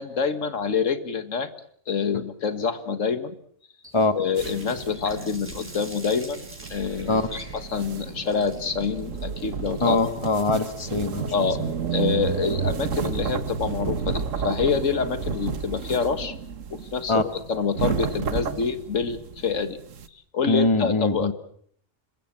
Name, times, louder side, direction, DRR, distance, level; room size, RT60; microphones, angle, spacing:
voice 1, 0.0-1.5 1.9-3.4 4.2-6.5 6.7-10.0 11.3-11.6 11.9-16.3 16.7-19.8 20.3-21.3, left 5 dB, 85° left, 11 dB, 1.9 m, -26 dB
Water tap faucet, 3.8-12.8, equal, 10° right, 5.0 m, -47 dB
sound 1, 4.4-20.1, right 6 dB, 90° right, 1.6 m, -32 dB
voice 2, 9.8-11.5 17.1-17.2 20.5-21.3, left 3 dB, 25° left, 10 dB, 1.7 m, -22 dB
26.5 x 21.5 x 7.4 m, 0.63 s
omnidirectional pair, 1.3 m